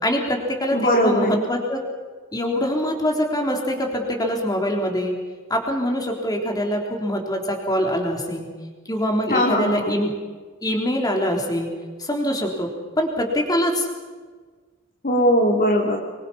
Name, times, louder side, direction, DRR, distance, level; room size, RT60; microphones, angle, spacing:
voice 1, 0.0-1.8 2.3-5.1 5.5-8.5 8.9-10.1 10.6-11.7 12.0-12.7 13.0-13.9, equal, 20° left, 1 dB, 3.8 m, -24 dB
voice 2, 0.7-1.4 9.3-10.0 15.0-16.0, equal, 45° left, -1 dB, 2.8 m, -19 dB
25.5 x 23.0 x 5.7 m, 1.5 s
head